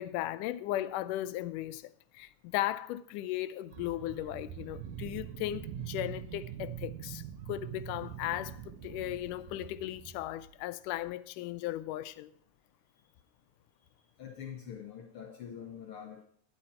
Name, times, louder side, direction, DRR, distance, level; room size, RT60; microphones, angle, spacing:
voice 1, 0.0-7.2 7.5-12.3, left 14 dB, 85° left, 2.1 m, -36 dB
sound 1, 3.7-10.5 11.0-11.1, right 9 dB, 85° right, 2.5 m, -43 dB
voice 2, 14.2-16.2, left 8 dB, 60° left, 1.4 m, -44 dB
12.0 x 10.5 x 4.4 m
omnidirectional pair, 3.7 m